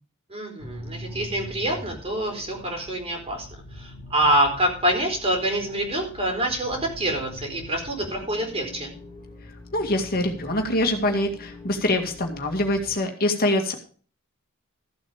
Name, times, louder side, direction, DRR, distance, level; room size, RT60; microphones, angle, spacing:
voice 1, 0.3-3.5 3.8-8.9, right 1 dB, 30° right, 2 dB, 4.2 m, -26 dB
sound 1, 0.6-13.0, left 1 dB, 20° left, 4.0 m, -43 dB
voice 2, 9.7-13.7, left 1 dB, 45° left, 3 dB, 2.1 m, -24 dB
14.5 x 8.0 x 5.0 m, 0.42 s
head